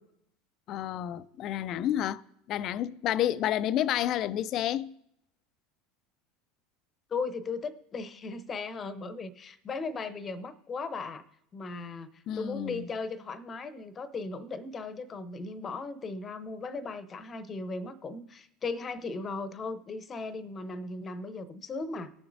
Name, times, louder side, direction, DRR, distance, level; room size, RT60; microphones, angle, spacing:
voice 1, 0.7-2.2 2.5-4.9 12.3-12.9, left 11 dB, 50° left, 0.4 m, -30 dB
voice 2, 7.1-11.2 11.5-22.1, left 3 dB, 30° left, 0.8 m, -37 dB
18.5 x 6.8 x 2.6 m
hypercardioid pair, 80°, 0 cm